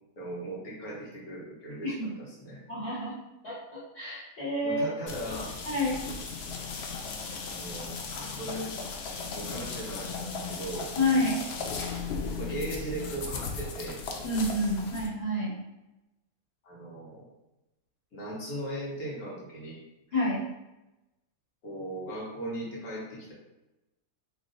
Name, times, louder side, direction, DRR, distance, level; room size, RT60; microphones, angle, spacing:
voice 1, 0.2-2.6 4.6-5.5 7.3-8.7 9.4-10.9 12.4-14.0 16.6-17.3 18.1-19.8 21.6-23.3, right 1 dB, 70° left, -5 dB, 1.6 m, -38 dB
voice 2, 2.7-3.1 3.4-4.9 5.6-6.0 10.9-11.4 14.2-15.5 20.1-20.4, left 1 dB, 45° left, -9 dB, 1.5 m, -28 dB
sound 1, 5.1-15.1, left 4 dB, 85° left, 0.5 m, -37 dB
3.2 x 2.4 x 3.8 m, 0.97 s
omnidirectional pair, 1.6 m